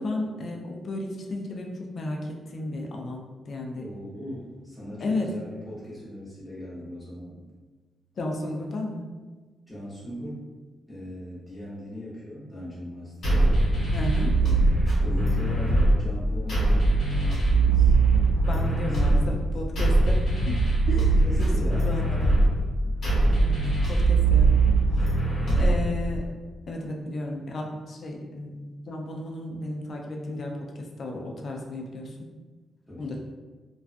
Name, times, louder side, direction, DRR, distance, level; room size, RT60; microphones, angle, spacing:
voice 1, 0.0-3.9 5.0-5.3 8.2-9.0 13.9-14.4 18.5-20.6 20.9-21.0 21.4-21.5 21.8-22.4 23.3-23.6 23.9-24.5 24.9-25.1 25.6-26.3 26.7-32.3 33.0-33.2, left 2 dB, 50° left, 1 dB, 0.4 m, -33 dB
voice 2, 3.8-7.4 9.7-10.5 10.9-13.7 14.4-16.9 17.2-17.9 18.4-19.4 20.9-21.9 25.3-25.8 32.9-33.2, equal, 5° left, -11 dB, 0.9 m, -39 dB
sound 1, 13.2-26.3, right 2 dB, 65° left, 1.1 m, -22 dB
2.3 x 2.2 x 2.4 m, 1.3 s
cardioid pair, 135°, 0 cm